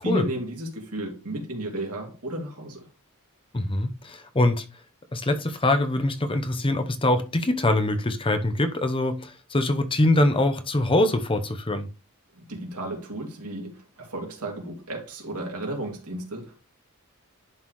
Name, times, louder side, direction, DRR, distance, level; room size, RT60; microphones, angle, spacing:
voice 1, 0.0-2.9 12.3-16.6, right 1 dB, 85° right, 2.7 m, -33 dB
voice 2, 3.5-4.6 5.1-11.9, left 1 dB, 25° left, 0.8 m, -23 dB
11.0 x 4.0 x 3.1 m
head